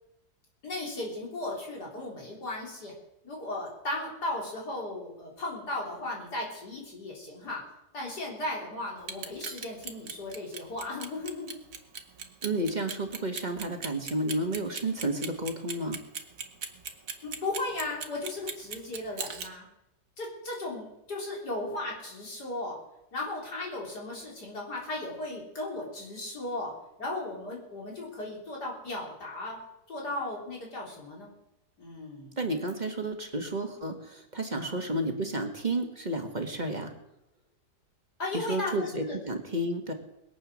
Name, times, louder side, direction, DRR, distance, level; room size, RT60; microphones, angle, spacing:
voice 1, 0.6-2.9 3.2-7.6 7.9-11.6 17.2-19.7 20.2-22.8 23.1-26.7 27.0-29.6 29.9-31.3 31.8-32.4 34.6-34.8 38.2-39.2, left 2 dB, 75° left, -3 dB, 4.6 m, -36 dB
Clock, 9.0-19.5, right 6 dB, 55° right, 1.6 m, -38 dB
voice 2, 12.4-16.0 32.4-36.9 38.3-39.9, right 1 dB, 30° right, 4 dB, 1.6 m, -31 dB
21.0 x 8.3 x 6.3 m, 0.87 s
omnidirectional pair, 1.7 m